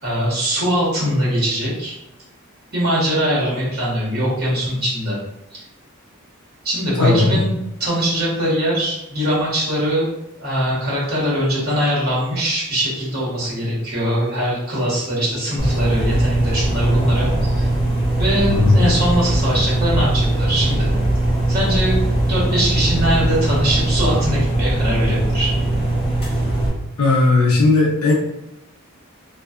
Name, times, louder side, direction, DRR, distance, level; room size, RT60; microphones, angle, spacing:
voice 1, 0.0-1.9 2.7-5.2 5.5-5.6 6.6-7.5 7.8-17.7 18.2-20.9 21.5-22.0 22.3-25.5, equal, 45° right, -7 dB, 1.1 m, -21 dB
voice 2, 7.0-7.4 18.5-18.9 27.0-28.1, left 3 dB, 75° left, -2 dB, 0.5 m, -16 dB
sound 1, 15.6-26.7, right 1 dB, 25° left, 0.9 m, -20 dB
2.5 x 2.4 x 2.3 m, 0.85 s
head